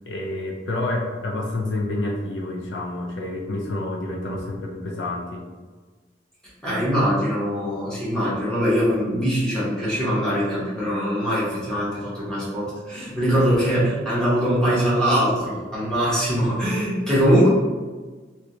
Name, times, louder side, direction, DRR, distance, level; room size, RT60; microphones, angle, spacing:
voice 1, 0.1-5.4, left 2 dB, 75° left, 0 dB, 0.5 m, -28 dB
voice 2, 6.6-17.5, equal, 5° left, -9 dB, 1.1 m, -22 dB
3.2 x 2.8 x 2.7 m, 1.4 s
head